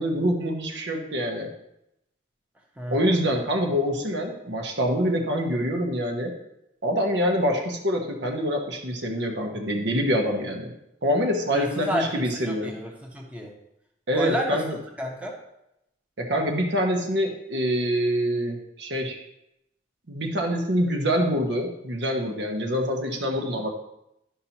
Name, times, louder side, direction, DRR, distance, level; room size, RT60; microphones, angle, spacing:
voice 1, 0.0-1.5 2.9-6.3 6.8-10.7 11.0-12.7 14.1-14.8 16.2-19.2 20.1-23.7, equal, 65° right, 1 dB, 1.1 m, -25 dB
voice 2, 2.8-3.2 11.5-13.5 14.1-14.6 15.0-15.3, equal, 5° right, -1 dB, 1.0 m, -30 dB
11.5 x 5.6 x 2.9 m, 0.84 s
head